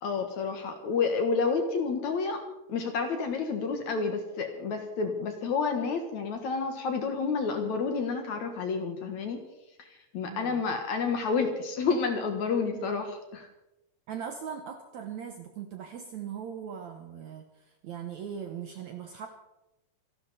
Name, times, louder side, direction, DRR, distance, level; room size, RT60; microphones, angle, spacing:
voice 1, 0.0-2.4 2.7-9.4 9.8-9.9 10.1-13.5, left 5 dB, 60° left, 6 dB, 2.4 m, -29 dB
voice 2, 10.2-10.7 12.7-12.8 14.1-19.3, right 8 dB, 65° right, 6 dB, 1.8 m, -40 dB
27.0 x 12.0 x 4.2 m, 0.95 s
omnidirectional pair, 4.5 m